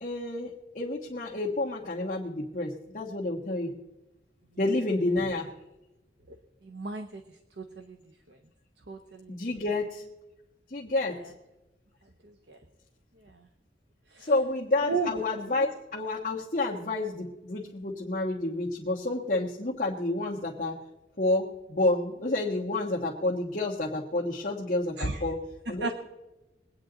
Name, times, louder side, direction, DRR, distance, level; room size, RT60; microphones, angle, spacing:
voice 1, 0.0-3.7 4.6-5.5 9.3-10.0 10.7-11.2 14.2-20.8 21.2-25.4 25.7-25.9, left 2 dB, 45° left, -6 dB, 1.4 m, -29 dB
voice 2, 6.6-7.2 7.6-8.0 8.9-9.4 11.1-11.3 12.5-12.6 14.1-14.3 14.8-15.1 25.0-25.2 25.8-25.9, right 4 dB, 75° right, 6 dB, 0.9 m, -33 dB
22.5 x 9.2 x 3.9 m, 1.0 s
head